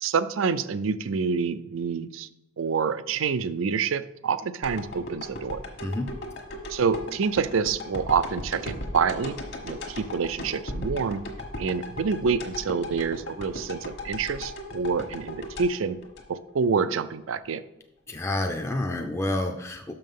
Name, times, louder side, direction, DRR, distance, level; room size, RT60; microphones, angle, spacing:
voice 1, 0.0-2.3 2.6-5.6 6.7-11.2 11.6-16.0 16.3-17.6, right 5 dB, 85° right, 14 dB, 0.4 m, -27 dB
sound 1, 4.6-16.8 17.2-17.3, left 1 dB, 60° left, 1.3 m, -37 dB
voice 2, 5.8-6.2 18.1-19.9, left 1 dB, 15° left, 3 dB, 0.4 m, -29 dB
6.3 x 5.6 x 5.4 m, 0.88 s
head